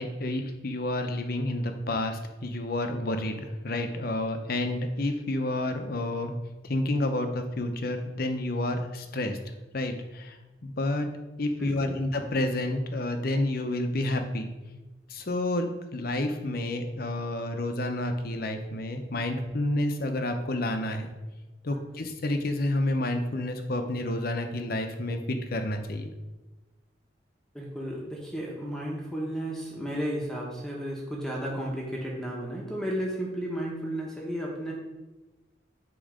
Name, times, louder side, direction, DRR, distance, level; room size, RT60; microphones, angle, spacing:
voice 1, 0.0-6.3 6.6-9.4 9.7-10.4 10.6-11.1 11.4-14.5 15.1-21.1 21.6-26.1, left 1 dB, 55° left, 6 dB, 0.7 m, -29 dB
voice 2, 11.6-12.0 21.7-21.8 27.5-34.7, equal, 5° left, -3 dB, 0.9 m, -33 dB
8.8 x 3.1 x 5.0 m, 1.1 s
head